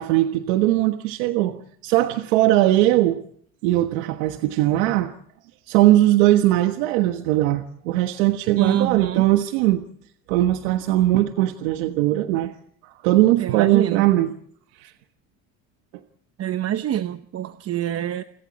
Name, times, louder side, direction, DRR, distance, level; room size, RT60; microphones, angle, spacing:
voice 1, 0.0-3.2 3.6-5.1 5.7-9.8 10.3-12.5 12.8-14.3 14.8-14.9, right 15 dB, 85° right, 7 dB, 1.4 m, -20 dB
voice 2, 8.6-9.3 13.4-14.0 16.4-18.2, right 11 dB, 40° right, 11 dB, 0.9 m, -25 dB
29.0 x 24.0 x 4.2 m, 0.62 s
supercardioid pair, 110°, 39 cm